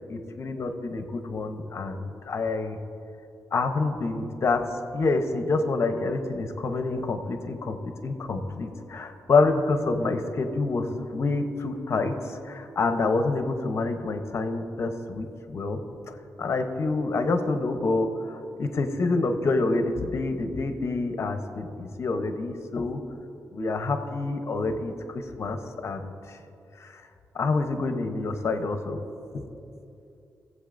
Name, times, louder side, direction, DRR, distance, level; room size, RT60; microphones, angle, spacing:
voice 1, 0.1-2.8 3.5-4.6 4.9-15.8 16.1-23.0 23.5-25.6 25.8-26.1 26.8-27.0 27.3-29.0 29.3-29.4, left 3 dB, 45° left, 7 dB, 0.8 m, -27 dB
18.5 x 7.8 x 2.6 m, 2.6 s
wide cardioid pair, 125°, 6 cm